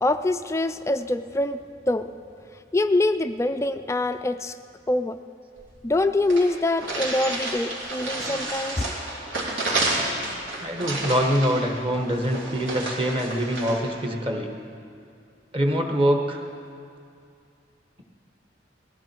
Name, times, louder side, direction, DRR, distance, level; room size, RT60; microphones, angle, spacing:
voice 1, 0.0-1.6 1.9-2.1 2.7-4.5 4.9-5.2 5.8-9.0, left 2 dB, 15° left, 10 dB, 0.3 m, -24 dB
sound 1, 5.6-5.7 5.9-6.0 6.3-13.8, right 2 dB, 80° right, 3.3 m, -30 dB
voice 2, 10.6-14.5 15.5-16.4, equal, 30° right, 3 dB, 1.3 m, -24 dB
19.5 x 15.0 x 4.5 m, 2.4 s
head